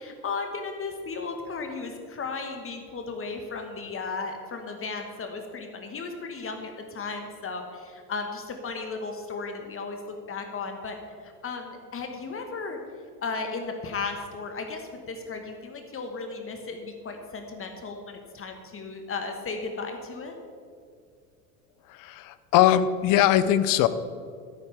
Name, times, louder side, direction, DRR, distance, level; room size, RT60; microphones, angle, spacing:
voice 1, 0.0-12.8 13.2-20.3, left 4 dB, 25° left, 4 dB, 1.6 m, -35 dB
voice 2, 21.9-23.9, left 12 dB, 45° left, 14 dB, 0.8 m, -21 dB
13.5 x 11.5 x 3.6 m, 2.3 s
hypercardioid pair, 80°, 47 cm